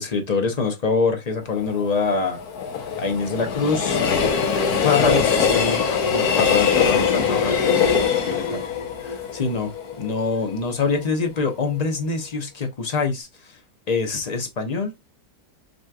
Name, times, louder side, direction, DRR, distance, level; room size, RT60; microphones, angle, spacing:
voice 1, 0.0-2.4 3.0-4.1 4.4-5.8 6.1-8.6 9.0-9.7 10.0-13.3 13.9-14.9, left 4 dB, 30° left, 0.8 m, -25 dB
Train, 1.5-10.6 11.0-11.1, left 6 dB, 80° left, 1.4 m, -22 dB
6.4 x 3.1 x 2.3 m
omnidirectional pair, 1.6 m